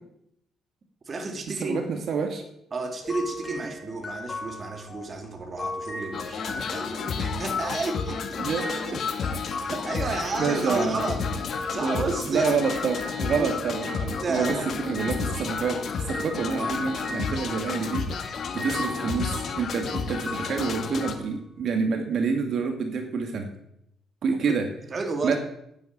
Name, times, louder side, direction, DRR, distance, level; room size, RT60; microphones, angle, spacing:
voice 1, 1.1-1.8 2.7-8.4 8.9-9.0 9.6-11.2 11.7-12.5 13.3-13.5 14.2-14.7 24.9-25.4, right 3 dB, 35° right, 4 dB, 2.7 m, -32 dB
voice 2, 1.6-2.4 8.4-9.0 10.0-11.1 11.8-14.6 14.9-23.5 24.2-24.7 25.2-25.4, right 5 dB, 55° right, 4 dB, 2.2 m, -28 dB
sound 1, 3.0-13.5 13.8-21.2, left 1 dB, 25° left, 5.4 m, -38 dB
sound 2, 6.1-21.1, left 6 dB, 55° left, 2.4 m, -32 dB
13.0 x 9.7 x 8.8 m, 0.77 s
cardioid pair, 125°, 0 cm